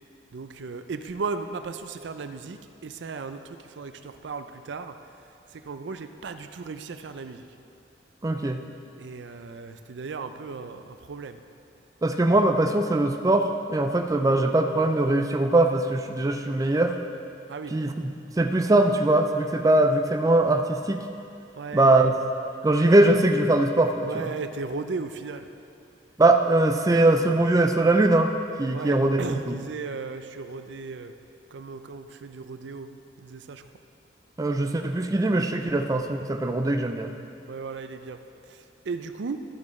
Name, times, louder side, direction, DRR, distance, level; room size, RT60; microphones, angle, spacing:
voice 1, 0.3-5.0 5.5-7.5 9.0-11.4 17.5-17.8 21.6-22.1 24.1-25.5 28.7-31.1 31.5-32.9 33.2-33.6 37.5-38.2 38.5-39.5, right 4 dB, 85° right, 9 dB, 0.5 m, -36 dB
voice 2, 8.2-8.6 12.0-17.0 17.7-21.0 21.7-22.2 22.6-24.3 26.2-28.3 28.6-29.6 34.4-37.1, right 2 dB, 20° right, 5 dB, 0.4 m, -21 dB
13.0 x 8.4 x 3.2 m, 2.5 s
head